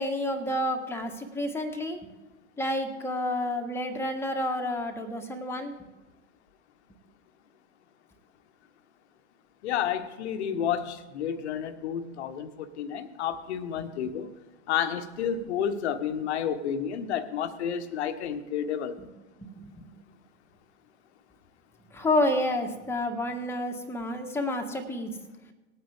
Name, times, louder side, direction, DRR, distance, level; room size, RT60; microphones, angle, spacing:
voice 1, 0.0-2.0 2.6-5.7 19.0-19.1 19.4-19.9 21.9-25.1, left 1 dB, 5° left, 3 dB, 1.5 m, -29 dB
voice 2, 9.6-14.3 14.7-19.0, left 8 dB, 60° left, 9 dB, 1.2 m, -30 dB
19.0 x 9.1 x 3.6 m, 1.1 s
hypercardioid pair, 100°, 37 cm